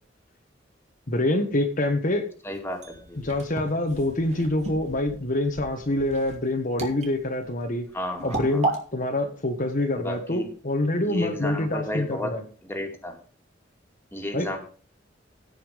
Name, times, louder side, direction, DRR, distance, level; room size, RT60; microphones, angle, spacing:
voice 1, 1.1-2.3 3.2-7.9 8.2-12.4 14.3-14.5, left 1 dB, 45° left, 3 dB, 1.4 m, -26 dB
voice 2, 2.4-2.8 3.1-3.2 7.9-8.7 9.9-10.5 11.0-12.3 12.7-13.2 14.1-14.6, left 1 dB, 10° left, 3 dB, 2.4 m, -32 dB
sound 1, 2.5-8.8, right 2 dB, 35° right, 2.6 m, -34 dB
16.0 x 5.7 x 5.2 m, 0.41 s
head